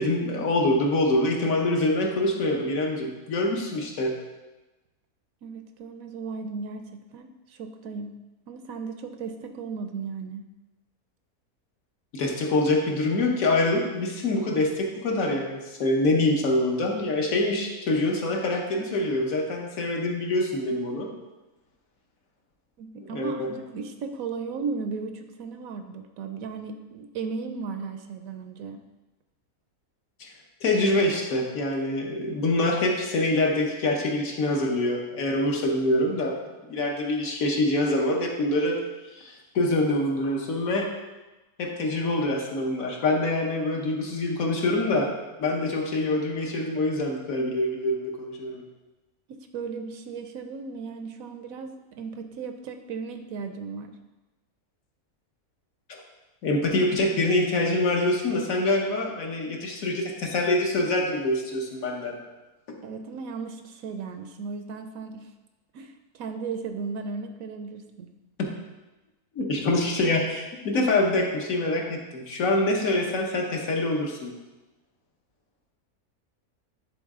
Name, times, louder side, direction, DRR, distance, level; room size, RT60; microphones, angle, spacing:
voice 1, 0.0-4.1 12.1-21.1 23.0-23.5 30.2-30.3 30.6-38.8 39.1-40.9 41.6-45.1 45.4-48.6 55.9-56.0 56.4-62.2 68.4-68.5 69.4-74.3, left 2 dB, 65° left, 0 dB, 1.4 m, -25 dB
voice 2, 5.4-8.1 8.5-10.4 22.8-28.8 49.3-54.0 62.8-65.3 65.7-68.1, right 5 dB, 75° right, 7 dB, 1.0 m, -36 dB
10.0 x 4.0 x 3.6 m, 1.1 s
omnidirectional pair, 1.6 m